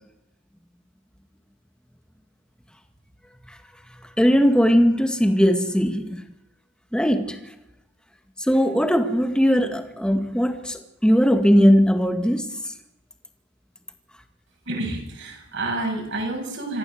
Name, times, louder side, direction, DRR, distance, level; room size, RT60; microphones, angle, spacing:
voice 1, 4.2-6.2 6.9-7.4 8.5-12.5, equal, 5° left, 5 dB, 1.9 m, -19 dB
voice 2, 14.7-16.8, right 2 dB, 60° right, 2 dB, 7.2 m, -29 dB
26.0 x 15.5 x 7.9 m, 0.86 s
head